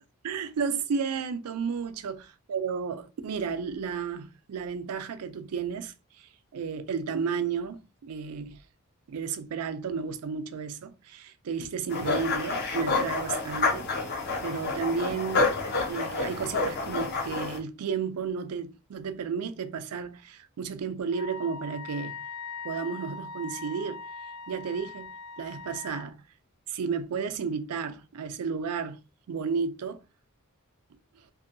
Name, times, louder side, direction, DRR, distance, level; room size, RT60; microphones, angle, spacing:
voice 1, 0.2-8.6 9.1-14.1 14.4-15.6 15.9-22.3 22.6-24.0 24.5-26.2 26.7-29.0 29.3-30.0, right 6 dB, 85° right, 0.4 m, -33 dB
sound 1, 11.9-17.6, left 3 dB, 50° left, 0.7 m, -29 dB
Wind instrument woodwind instrument, 21.1-26.1, left 4 dB, 90° left, 1.5 m, -41 dB
2.6 x 2.2 x 2.5 m
head